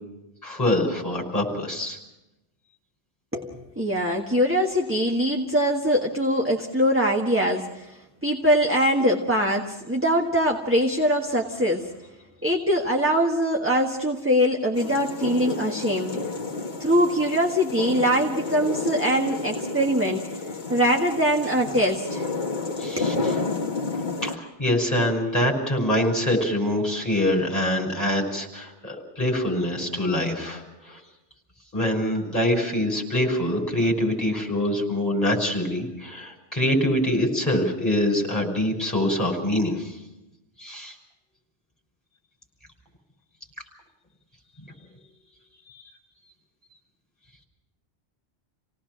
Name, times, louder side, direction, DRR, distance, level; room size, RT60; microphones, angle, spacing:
voice 1, 0.4-2.0 22.8-23.1 24.2-31.0 31.7-40.0 40.6-40.9 45.7-45.8, left 1 dB, 15° left, 0 dB, 5.7 m, -24 dB
voice 2, 3.3-11.9 12.4-16.2 16.8-20.3 20.7-22.3 23.0-23.1, equal, 10° right, 0 dB, 1.5 m, -23 dB
sound 1, 14.7-24.4, left 3 dB, 45° left, 1.4 m, -31 dB
28.0 x 18.0 x 6.2 m, 0.95 s
omnidirectional pair, 1.2 m